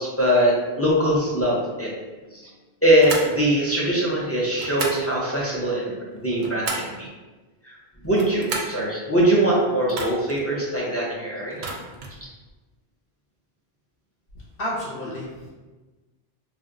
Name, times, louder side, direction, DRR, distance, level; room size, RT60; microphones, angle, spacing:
voice 1, 0.0-1.9 2.3-2.4 2.8-7.1 7.6-7.8 8.0-11.6, right 1 dB, 20° left, -6 dB, 0.4 m, -22 dB
voice 2, 2.1-2.6 14.6-15.5, equal, 65° left, -6 dB, 0.8 m, -32 dB
sound 1, 3.0-3.3 4.6-5.1 6.1-7.0 8.0-8.8 9.9-10.4 11.5-12.2, right 3 dB, 60° right, 0.6 m, -32 dB
2.5 x 2.1 x 3.6 m, 1.2 s
omnidirectional pair, 1.1 m